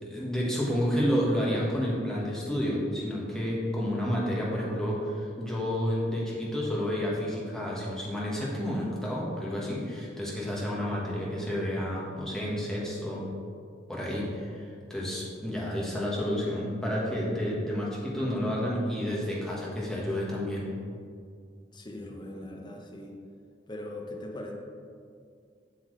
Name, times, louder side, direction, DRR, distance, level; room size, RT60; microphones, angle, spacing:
voice 1, 0.0-13.2 13.9-20.7, equal, 5° left, -5 dB, 1.4 m, -30 dB
voice 2, 21.7-23.1 23.7-24.5, left 1 dB, 25° left, 0 dB, 0.8 m, -40 dB
7.5 x 7.1 x 3.2 m, 2.3 s
head